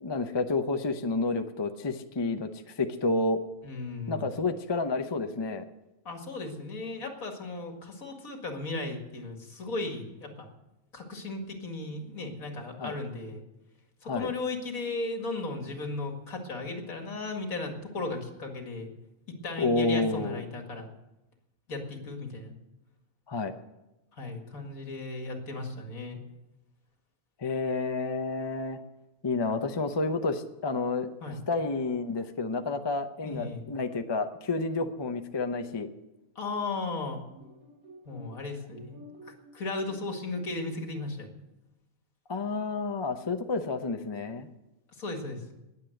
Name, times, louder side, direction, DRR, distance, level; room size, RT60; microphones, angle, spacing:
voice 1, 0.0-3.4 4.1-5.6 12.8-12.9 14.1-14.3 19.6-20.4 23.3-23.5 27.4-28.8 29.2-31.1 31.5-35.9 42.3-44.5, left 3 dB, 25° left, 7 dB, 0.6 m, -30 dB
voice 2, 3.6-4.3 6.0-10.5 10.9-13.4 14.0-18.9 19.3-20.9 21.7-22.5 24.1-26.2 31.2-31.4 33.2-33.7 36.4-37.2 38.1-41.3 44.9-45.5, left 2 dB, 70° left, 3 dB, 2.5 m, -36 dB
sound 1, 37.3-41.0, equal, 80° right, 4.0 m, -52 dB
19.5 x 7.5 x 7.9 m, 0.97 s
omnidirectional pair, 1.5 m